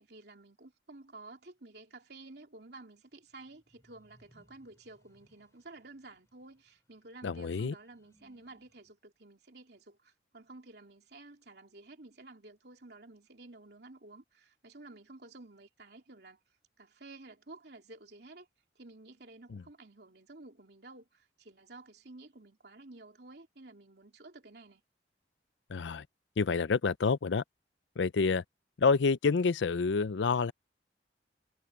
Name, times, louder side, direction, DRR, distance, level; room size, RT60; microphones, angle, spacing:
voice 1, 0.0-16.4 16.8-18.5 18.7-24.8, right 2 dB, 65° right, 3.4 m, -52 dB
sound 1, 3.1-8.9, equal, 15° left, 6.6 m, -69 dB
voice 2, 7.2-7.7 19.5-19.6 25.7-26.0 26.4-27.4 28.0-28.4 28.8-30.5, left 4 dB, 90° left, 0.5 m, -28 dB
head